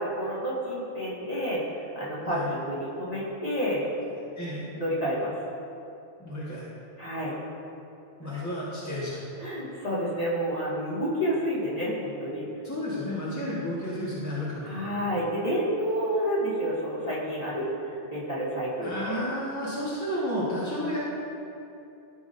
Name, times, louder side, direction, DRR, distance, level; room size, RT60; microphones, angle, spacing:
voice 1, 0.0-1.6 1.9-3.8 4.8-5.3 7.0-7.4 8.3-8.5 9.4-12.5 14.6-17.7 18.1-19.2, equal, 35° left, -8 dB, 2.0 m, -29 dB
voice 2, 4.4-4.7 6.2-6.6 8.2-9.2 12.6-14.9 18.8-21.0, left 1 dB, 15° left, -9 dB, 1.4 m, -32 dB
14.0 x 6.1 x 2.6 m, 2.7 s
omnidirectional pair, 1.2 m